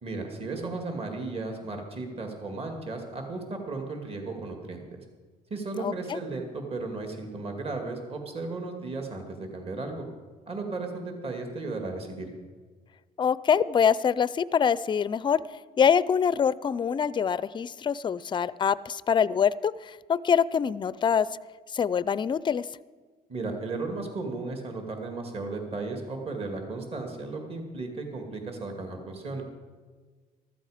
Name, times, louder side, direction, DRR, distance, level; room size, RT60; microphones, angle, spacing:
voice 1, 0.0-5.0 5.5-10.0 10.5-12.3 23.3-29.4, right 3 dB, 35° right, 3 dB, 2.2 m, -35 dB
voice 2, 5.8-6.2 13.2-15.4 15.8-21.3 21.7-22.6, left 7 dB, 30° left, 18 dB, 0.4 m, -24 dB
14.5 x 13.5 x 5.0 m, 1.4 s
cardioid pair, 110°, 17 cm